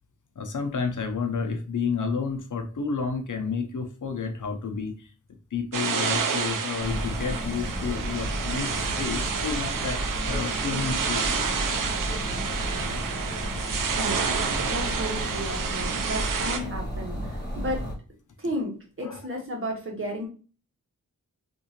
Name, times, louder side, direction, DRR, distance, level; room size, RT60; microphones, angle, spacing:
voice 1, 0.4-5.1 5.5-11.9 19.0-19.2, left 5 dB, 70° left, 5 dB, 0.7 m, -31 dB
sound 1, 5.7-16.6, right 5 dB, 85° right, 0.6 m, -29 dB
sound 2, 6.8-17.9, equal, 10° left, 1.9 m, -33 dB
voice 2, 13.9-17.9 18.4-20.3, equal, 40° right, -1 dB, 1.4 m, -33 dB
3.6 x 2.7 x 2.9 m, 0.37 s
cardioid pair, 60°, 32 cm